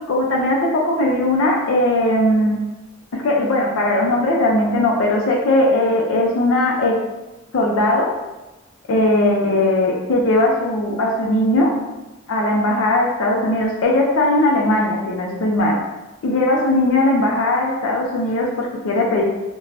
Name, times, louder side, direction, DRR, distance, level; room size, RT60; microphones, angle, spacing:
voice 1, 0.0-2.6 3.1-7.0 7.5-8.1 8.9-11.7 12.3-15.8 16.2-19.2, left 1 dB, 75° left, -1 dB, 0.4 m, -18 dB
2.5 x 2.2 x 3.2 m, 1.0 s
head